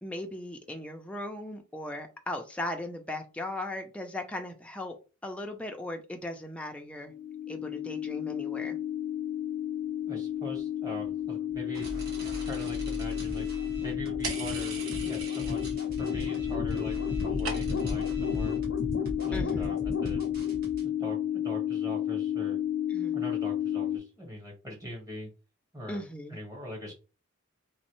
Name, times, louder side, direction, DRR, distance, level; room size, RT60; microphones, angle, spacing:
voice 1, 0.0-4.9 5.2-7.1 7.5-8.8 19.3-19.8 22.9-23.1 25.9-26.4, left 1 dB, 5° left, 0.5 m, -38 dB
sound 1, 7.1-24.0, left 9 dB, 70° left, 0.6 m, -31 dB
voice 2, 10.1-11.9 12.3-13.5 13.8-14.8 15.0-15.6 16.0-18.6 19.2-20.2 20.8-22.6 23.1-25.3 25.7-26.0 26.3-26.9, equal, 15° right, 1.3 m, -42 dB
sound 2, 11.7-20.8, equal, 45° right, 1.5 m, -42 dB
sound 3, 14.2-15.8 16.1-16.7 16.9-18.0, right 4 dB, 75° right, 1.0 m, -39 dB
3.2 x 3.1 x 3.0 m
head